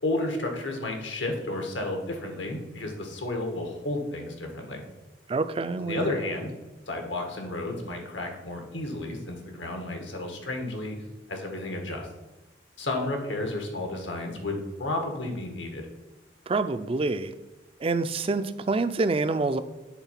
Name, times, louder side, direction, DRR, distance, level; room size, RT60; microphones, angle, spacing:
voice 1, 0.0-4.8 5.8-6.5 6.9-11.0 11.3-12.1 12.8-15.9, left 2 dB, 80° left, 3 dB, 1.4 m, -32 dB
voice 2, 5.3-6.1 16.5-17.3 17.8-19.6, right 3 dB, 30° right, 11 dB, 0.3 m, -27 dB
8.2 x 3.6 x 5.7 m, 1.1 s
head